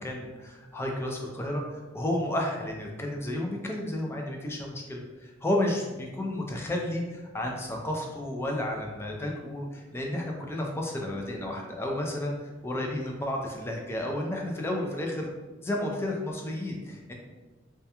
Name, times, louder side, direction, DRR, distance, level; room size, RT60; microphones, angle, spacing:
voice 1, 0.0-12.4 12.6-15.3 15.6-17.1, left 1 dB, 10° left, 0 dB, 0.3 m, -32 dB
2.2 x 2.1 x 2.8 m, 1.2 s
head